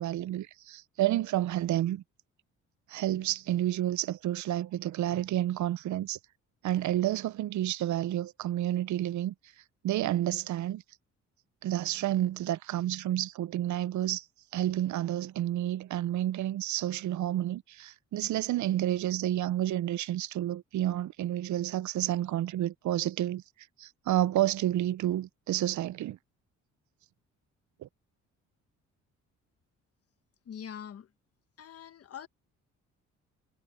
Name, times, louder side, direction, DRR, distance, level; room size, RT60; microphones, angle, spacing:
voice 1, 0.0-2.0 2.9-6.2 6.6-9.3 9.8-10.8 11.6-14.2 14.5-23.4 23.8-26.2 27.8-27.9, right 13 dB, 70° right, 0.7 m, -30 dB
voice 2, 30.4-31.1 31.6-32.3, left 8 dB, 50° left, 1.4 m, -43 dB
cardioid pair, 90°, 30 cm